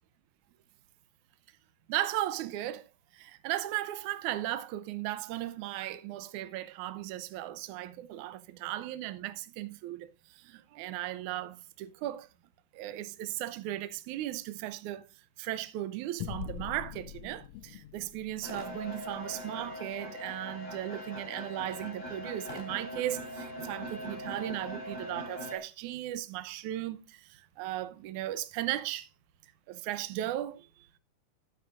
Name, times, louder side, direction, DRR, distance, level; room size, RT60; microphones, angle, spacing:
voice 1, 1.9-12.3 12.7-15.1 15.4-29.1 29.7-31.0, right 14 dB, 75° right, 2.1 m, -36 dB
sound 1, 16.2-21.0, left 11 dB, 80° left, 1.5 m, -45 dB
sound 2, 18.4-25.6, left 1 dB, 20° left, 2.7 m, -41 dB
12.5 x 9.4 x 2.6 m
omnidirectional pair, 3.8 m